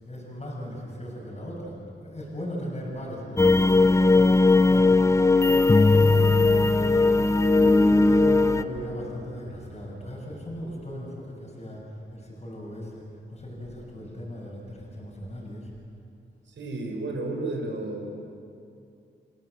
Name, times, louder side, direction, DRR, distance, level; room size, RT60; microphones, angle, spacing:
voice 1, 0.0-1.8 2.0-5.2 5.5-7.2 7.8-11.8 12.1-13.0 13.3-15.7, equal, 30° left, -3 dB, 6.5 m, -38 dB
sound 1, 3.4-8.6, left 3 dB, 15° left, 0.6 m, -18 dB
Bass guitar, 7.6-11.3, right 1 dB, 35° right, 2.4 m, -42 dB
voice 2, 16.6-18.1, right 2 dB, 70° right, 2 dB, 4.9 m, -32 dB
28.5 x 17.0 x 7.8 m, 2.5 s
wide cardioid pair, 125°, 21 cm